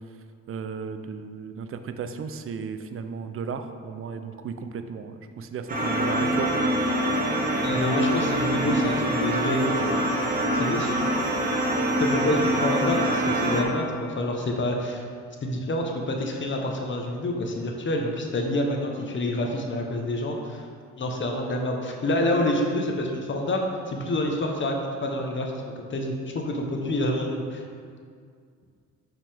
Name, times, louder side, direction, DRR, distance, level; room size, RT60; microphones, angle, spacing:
voice 1, 0.5-6.5, right 6 dB, 45° right, 9 dB, 0.6 m, -34 dB
sound 1, 5.7-13.6, right 1 dB, 30° right, 1.5 m, -24 dB
voice 2, 7.6-9.9 10.5-10.9 12.0-15.0 15.4-20.6 21.0-27.6, left 1 dB, 40° left, 1 dB, 1.0 m, -27 dB
6.7 x 6.0 x 3.5 m, 2.1 s
cardioid pair, 90°, 30 cm